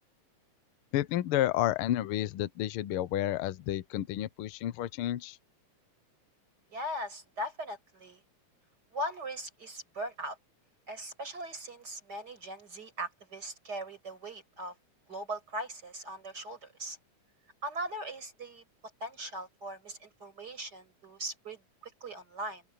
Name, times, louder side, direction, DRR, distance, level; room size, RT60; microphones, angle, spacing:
voice 1, 0.9-5.4, left 13 dB, 80° left, 1.2 m, -31 dB
voice 2, 6.7-8.2 8.9-10.4 10.9-14.7 15.1-17.0 17.6-18.6 19.0-22.6, right 1 dB, 30° right, 6.2 m, -39 dB
open air
omnidirectional pair, 3.5 m